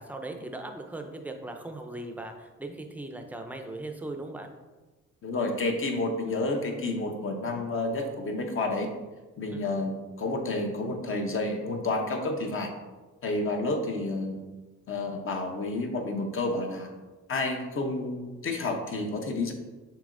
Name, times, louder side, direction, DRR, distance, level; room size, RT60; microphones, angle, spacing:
voice 1, 0.0-4.5 9.5-9.6, right 2 dB, 5° right, 4 dB, 0.5 m, -39 dB
voice 2, 5.2-8.9 9.4-12.7 13.2-14.4 14.9-16.9 17.3-19.5, left 2 dB, 45° left, 3 dB, 0.8 m, -30 dB
6.8 x 2.8 x 2.6 m, 1.2 s
cardioid pair, 90°, 30 cm